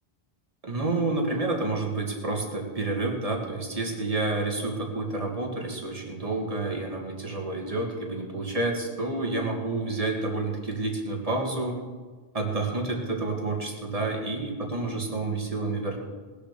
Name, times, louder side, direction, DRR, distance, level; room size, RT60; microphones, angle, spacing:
voice 1, 0.6-11.8 12.3-16.0, right 2 dB, 35° right, 1 dB, 2.2 m, -29 dB
19.5 x 6.9 x 6.8 m, 1.4 s
omnidirectional pair, 1.1 m